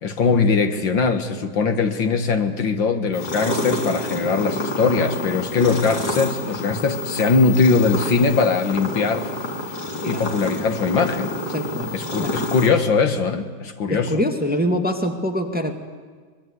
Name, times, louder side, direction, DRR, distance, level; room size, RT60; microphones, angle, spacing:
voice 1, 0.0-9.3 10.0-11.3 11.9-14.2, left 4 dB, 70° left, 8 dB, 2.3 m, -21 dB
sound 1, 3.1-12.7, left 1 dB, 50° left, 4.2 m, -28 dB
voice 2, 10.0-10.3 11.5-11.9 12.2-12.3 13.9-15.7, equal, 5° right, 4 dB, 2.0 m, -24 dB
24.5 x 22.0 x 9.6 m, 1.5 s
omnidirectional pair, 2.2 m